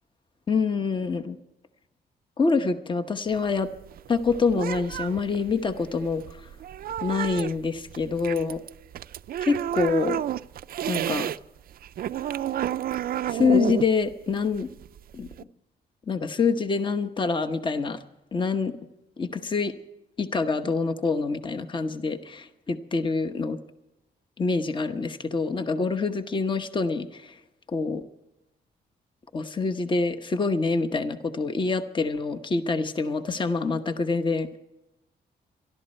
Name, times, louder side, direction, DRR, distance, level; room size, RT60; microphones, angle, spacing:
voice 1, 0.5-1.4 2.4-3.7 4.1-6.2 7.0-8.6 9.4-10.2 10.9-11.3 13.3-14.7 15.1-15.3 16.1-18.0 18.3-18.7 19.2-19.7 20.2-23.6 24.4-27.3 27.7-28.0 29.3-34.6, left 4 dB, 30° left, 9 dB, 1.0 m, -26 dB
sound 1, 3.3-11.4 11.7-15.4, right 11 dB, 60° right, 0.4 m, -31 dB
26.0 x 12.0 x 4.4 m, 0.95 s
wide cardioid pair, 150°, 17 cm